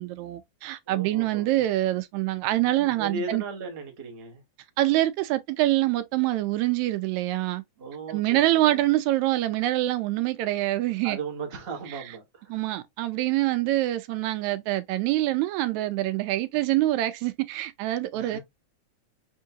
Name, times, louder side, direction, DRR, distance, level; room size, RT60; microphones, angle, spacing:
voice 1, 0.0-3.4 4.8-7.6 8.1-11.2 12.5-18.4, right 16 dB, 80° right, 1.9 m, -25 dB
voice 2, 0.9-1.5 3.0-4.4 7.8-8.9 11.0-12.6 18.1-18.4, right 4 dB, 55° right, 0.6 m, -37 dB
4.5 x 3.5 x 2.7 m
omnidirectional pair, 3.4 m